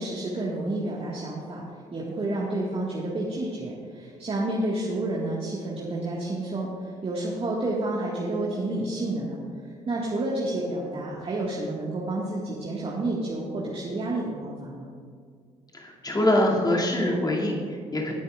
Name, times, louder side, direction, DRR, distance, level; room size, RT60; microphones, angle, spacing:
voice 1, 0.0-1.6 1.9-14.9, right 2 dB, 35° right, -4 dB, 1.7 m, -30 dB
voice 2, 15.7-18.1, left 1 dB, 25° left, -2 dB, 2.4 m, -24 dB
17.5 x 9.2 x 2.4 m, 2.1 s
figure-of-eight pair, 45°, 17 cm